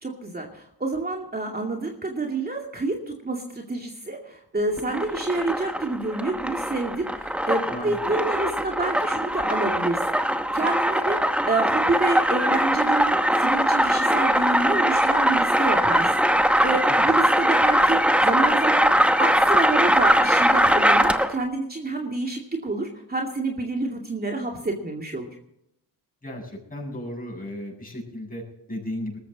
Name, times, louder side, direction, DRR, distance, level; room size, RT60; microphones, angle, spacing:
voice 1, 0.0-18.9 19.2-25.3, right 2 dB, 25° right, 0 dB, 2.4 m, -28 dB
sound 1, 4.8-21.4, equal, 5° right, 1.0 m, -21 dB
voice 2, 26.2-29.2, left 1 dB, 20° left, 0 dB, 7.6 m, -35 dB
19.5 x 14.0 x 4.1 m, 0.75 s
cardioid pair, 80°, 39 cm